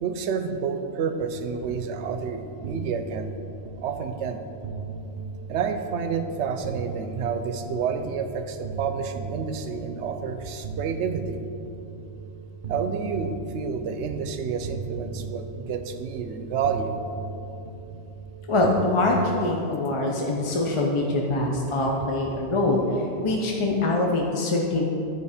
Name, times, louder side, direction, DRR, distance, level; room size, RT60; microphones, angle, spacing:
voice 1, 0.0-3.3 3.8-4.4 5.5-11.4 12.7-17.0, right 6 dB, 80° right, 8 dB, 0.9 m, -29 dB
sound 1, 1.2-19.2, right 4 dB, 50° right, 0.8 m, -38 dB
voice 2, 18.5-24.8, left 2 dB, 35° left, 0 dB, 0.5 m, -24 dB
9.9 x 4.4 x 4.8 m, 2.8 s
omnidirectional pair, 1.2 m